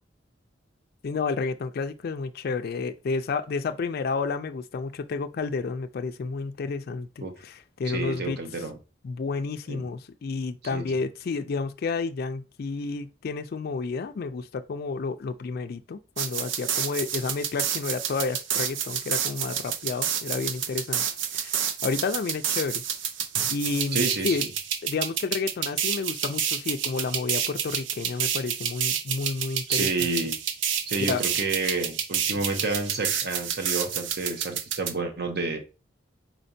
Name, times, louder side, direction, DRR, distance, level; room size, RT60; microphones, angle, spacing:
voice 1, 1.0-8.4 9.0-21.0 21.3-22.8 23.5-24.4 24.8-30.1 31.0-31.2, left 4 dB, 55° left, 0.4 m, -31 dB
voice 2, 7.9-8.8 9.7-9.8 10.7-10.9 23.9-24.5 29.7-30.3 30.9-35.6, right 3 dB, 60° right, 1.0 m, -30 dB
sound 1, 16.2-34.9, right 8 dB, 80° right, 0.6 m, -29 dB
4.4 x 4.3 x 2.6 m
head